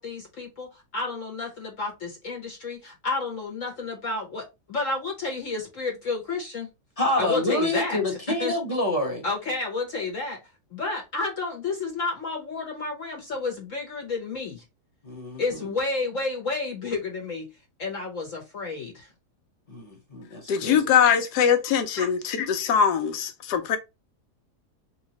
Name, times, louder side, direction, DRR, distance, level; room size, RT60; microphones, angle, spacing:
voice 1, 0.0-6.7 7.1-8.5 9.2-10.4 10.7-14.6 15.4-17.5 17.8-19.1 20.6-20.8 22.0-22.1, left 3 dB, 60° left, 1.2 m, -31 dB
voice 2, 7.0-9.2 15.0-15.4 19.7-20.8, left 1 dB, 25° left, 0.9 m, -27 dB
voice 3, 20.5-23.8, left 7 dB, 85° left, 1.3 m, -22 dB
3.5 x 2.8 x 2.8 m
omnidirectional pair, 1.7 m